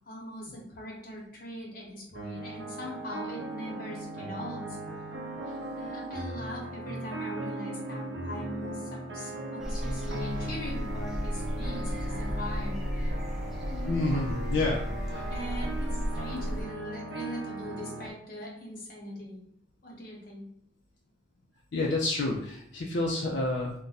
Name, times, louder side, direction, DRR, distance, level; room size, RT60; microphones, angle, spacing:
voice 1, 0.1-4.8 5.7-13.1 13.7-14.3 15.3-19.4 19.8-20.5, left 1 dB, 50° left, -2 dB, 1.0 m, -40 dB
sound 1, 2.2-18.1, right 1 dB, 70° right, 0.5 m, -38 dB
sound 2, 9.6-16.6, equal, ahead, 0.5 m, -34 dB
voice 2, 13.9-14.8 15.1-15.2 21.7-23.7, left 2 dB, 75° left, -2 dB, 0.5 m, -29 dB
2.5 x 2.2 x 4.0 m, 0.69 s
head